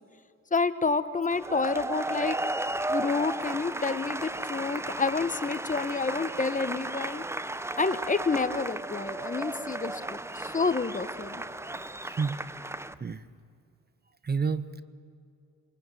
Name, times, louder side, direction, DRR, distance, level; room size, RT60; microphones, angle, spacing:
voice 1, 0.5-2.3 2.9-7.2 7.8-11.4, left 4 dB, 25° left, 12 dB, 1.3 m, -29 dB
sound 1, 1.3-12.9, right 2 dB, 10° right, 0.9 m, -34 dB
voice 2, 14.2-14.8, right 5 dB, 30° right, 14 dB, 1.2 m, -29 dB
28.0 x 23.0 x 9.3 m, 2.4 s
cardioid pair, 90°, 30 cm